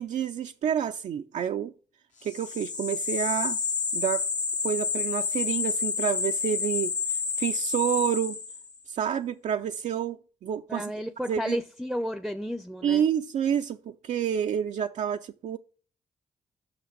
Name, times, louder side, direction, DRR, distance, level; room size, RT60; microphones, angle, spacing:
voice 1, 0.0-1.7 2.2-3.6 3.9-4.3 4.6-7.0 7.4-8.4 8.9-10.8 11.3-11.6 12.8-15.6, right 9 dB, 70° right, 0.4 m, -29 dB
sound 1, 2.2-8.8, left 5 dB, 75° left, 1.5 m, -29 dB
voice 2, 10.7-13.0, equal, ahead, 0.6 m, -32 dB
5.9 x 5.7 x 5.2 m
cardioid pair, 55°, 13 cm